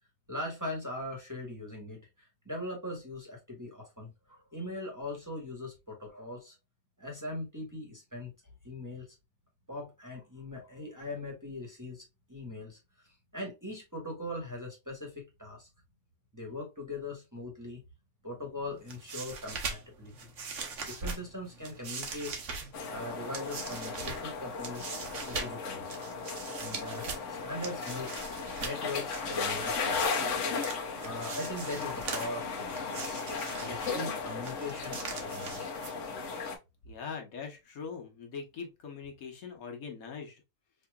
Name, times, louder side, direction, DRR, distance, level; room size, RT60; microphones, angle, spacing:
voice 1, 0.3-6.6 7.0-8.3 8.6-9.1 9.7-12.8 13.3-15.7 16.3-17.8 18.2-20.3 20.8-22.4 22.9-24.9 25.2-25.8 26.5-28.1 28.6-30.0 31.0-33.2 33.6-35.7, left 1 dB, 15° right, 1.2 m, -40 dB
sound 1, 18.7-36.3, right 4 dB, 60° right, 1.2 m, -42 dB
sound 2, 22.7-36.6, left 4 dB, 60° left, 1.2 m, -36 dB
voice 2, 36.8-40.4, left 5 dB, 75° left, 1.5 m, -42 dB
4.8 x 2.8 x 2.3 m
omnidirectional pair, 1.5 m